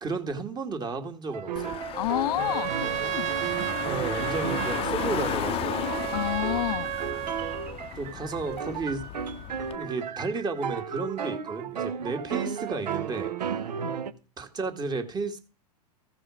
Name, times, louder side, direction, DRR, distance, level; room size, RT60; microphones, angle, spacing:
voice 1, 0.0-1.8 3.9-5.8 8.0-9.1 9.7-13.3 14.4-15.4, right 3 dB, 20° right, 1.7 m, -33 dB
sound 1, 1.3-14.1, right 7 dB, 90° right, 0.9 m, -35 dB
Car / Engine, 1.6-9.8, left 11 dB, 25° left, 0.6 m, -35 dB
voice 2, 2.0-3.3 6.1-6.9 13.8-13.9, left 15 dB, 70° left, 0.4 m, -29 dB
Trumpet, 2.2-7.7, right 14 dB, 35° right, 0.7 m, -33 dB
15.0 x 5.0 x 6.2 m
hypercardioid pair, 115°, 21 cm